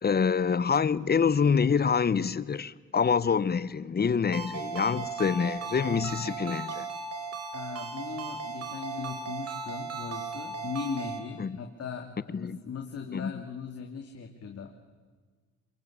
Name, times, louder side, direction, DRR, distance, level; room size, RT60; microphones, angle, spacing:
voice 1, 0.0-6.9 11.4-11.6 12.4-12.6 13.1-13.3, left 6 dB, 30° left, 18 dB, 0.9 m, -26 dB
Ringtone, 4.3-11.2, right 4 dB, 55° right, 4.4 m, -36 dB
voice 2, 7.5-14.7, left 6 dB, 55° left, 3 dB, 2.6 m, -38 dB
27.5 x 22.5 x 8.6 m, 1.4 s
cardioid pair, 90°, 30 cm